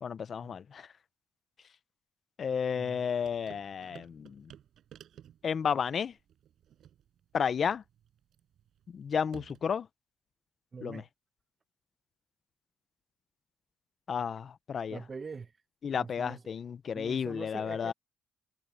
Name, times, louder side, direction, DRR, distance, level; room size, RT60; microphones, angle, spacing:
voice 1, 0.0-0.9 2.4-4.4 5.4-6.1 7.3-7.8 8.9-9.9 10.8-11.0 14.1-15.0 15.8-17.9, left 7 dB, 50° left, 0.7 m, -32 dB
voice 2, 2.7-3.1 10.7-11.1 14.9-15.5 15.9-16.5 16.9-17.9, right 5 dB, 35° right, 1.1 m, -44 dB
sound 1, 3.2-9.8, right 10 dB, 70° right, 6.0 m, -56 dB
cardioid pair, 90°, 0 cm